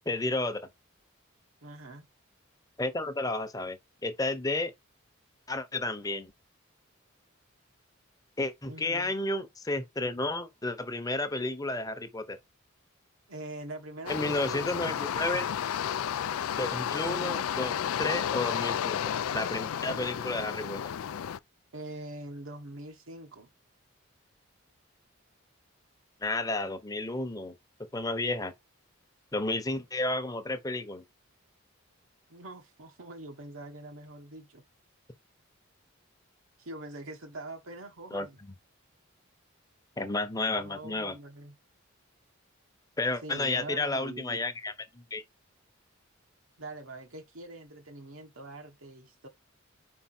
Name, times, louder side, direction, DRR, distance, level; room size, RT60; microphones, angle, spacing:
voice 1, 0.1-0.7 2.8-4.7 5.5-6.3 8.4-12.4 14.1-15.5 16.6-17.7 18.0-20.8 26.2-27.5 27.9-28.5 29.3-31.0 38.1-38.3 40.0-41.2 43.0-45.2, left 2 dB, 15° left, 0.8 m, -32 dB
voice 2, 1.6-2.1 8.7-9.1 13.3-15.0 17.0-17.5 21.7-23.5 32.3-34.6 36.6-38.4 40.6-41.5 43.2-44.4 46.6-49.3, right 2 dB, 80° right, 1.2 m, -43 dB
sound 1, 14.1-21.4, left 9 dB, 90° left, 0.4 m, -32 dB
4.9 x 4.6 x 4.3 m
head